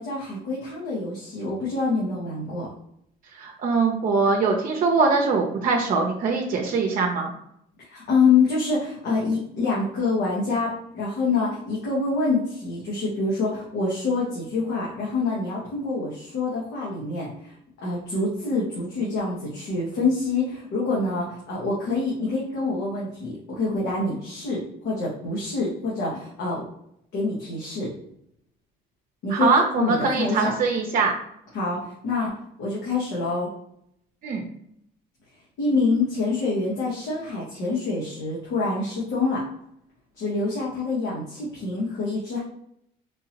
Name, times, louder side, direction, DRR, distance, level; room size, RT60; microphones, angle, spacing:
voice 1, 0.0-2.7 7.8-17.5 17.8-26.6 27.1-27.9 29.2-29.5 29.8-30.5 31.5-32.3 32.6-33.5 35.6-39.4 40.2-42.4, left 3 dB, 80° left, -5 dB, 1.2 m, -26 dB
voice 2, 3.3-7.3 29.3-31.1 34.2-34.5, right 4 dB, 55° right, 0 dB, 0.6 m, -22 dB
3.8 x 2.8 x 2.8 m, 0.74 s
cardioid pair, 110°, 17 cm